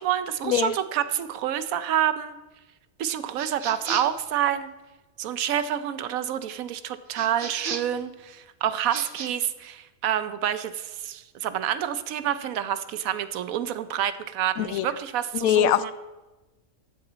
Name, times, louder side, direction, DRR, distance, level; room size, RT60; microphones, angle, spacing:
voice 1, 0.0-2.4 3.0-4.7 5.2-15.9, right 10 dB, 85° right, 12 dB, 1.1 m, -28 dB
sound 1, 3.3-4.2 7.1-8.0 8.8-9.3, right 6 dB, 50° right, 0.7 m, -35 dB
voice 2, 14.6-14.9 15.3-15.9, left 11 dB, 85° left, 15 dB, 1.0 m, -22 dB
13.5 x 9.7 x 4.0 m, 1.1 s
omnidirectional pair, 1.4 m